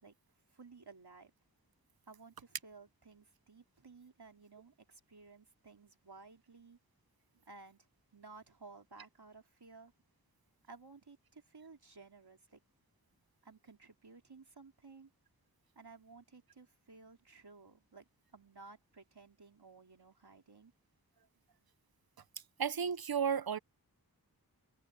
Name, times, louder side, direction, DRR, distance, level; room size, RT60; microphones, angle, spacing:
voice 1, 0.5-1.3 2.1-6.8 7.5-7.9 8.1-9.9 10.7-12.6 13.4-15.1 15.7-20.7, right 4 dB, 90° right, 3.0 m, -56 dB
voice 2, 22.6-23.6, right 7 dB, 70° right, 0.6 m, -33 dB
wide cardioid pair, 45°, 38 cm